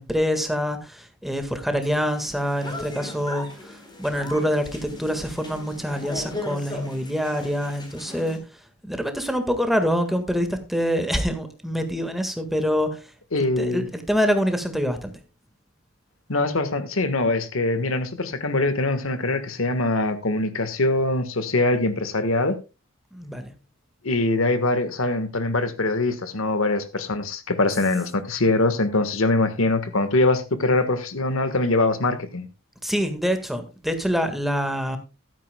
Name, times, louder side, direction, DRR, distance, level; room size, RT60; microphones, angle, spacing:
voice 1, 0.0-8.4 8.8-13.1 13.6-15.1 23.1-23.5 32.8-35.0, equal, ahead, 1.6 m, -25 dB
sound 1, 1.8-8.4, left 2 dB, 20° left, 3.7 m, -38 dB
voice 2, 13.3-13.9 16.3-22.6 24.0-32.5, left 2 dB, 80° left, 1.4 m, -23 dB
14.5 x 12.5 x 2.2 m
head